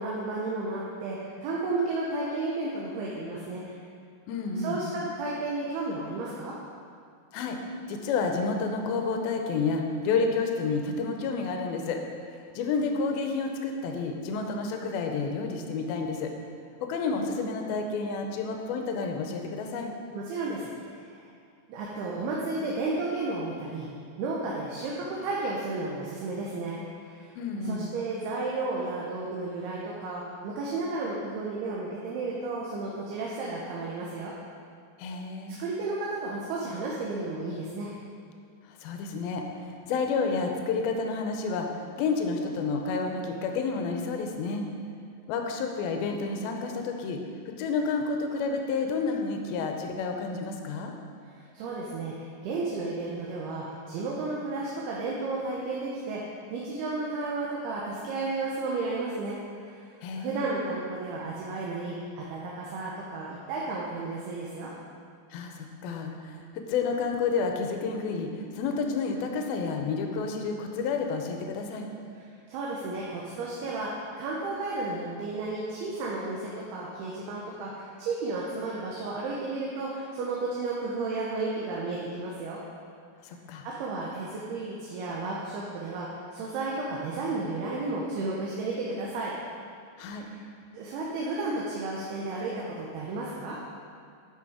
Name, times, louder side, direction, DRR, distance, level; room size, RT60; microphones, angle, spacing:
voice 1, 0.0-3.8 4.5-6.6 20.1-21.3 21.7-23.9 24.2-34.3 35.6-37.9 51.3-56.2 56.5-59.4 59.6-64.7 72.5-73.9 74.2-82.6 83.6-89.3 90.2-90.4 90.7-93.6, right 3 dB, 75° right, -4 dB, 2.7 m, -33 dB
voice 2, 4.3-4.9 7.3-7.6 7.9-12.0 12.5-16.3 16.8-19.9 27.4-27.9 35.0-35.6 38.7-44.6 45.3-47.2 47.6-50.9 60.0-60.5 65.3-71.9 83.2-83.6 90.0-90.3, left 4 dB, 75° left, 3 dB, 2.3 m, -30 dB
11.0 x 6.0 x 5.0 m, 2.3 s
omnidirectional pair, 5.0 m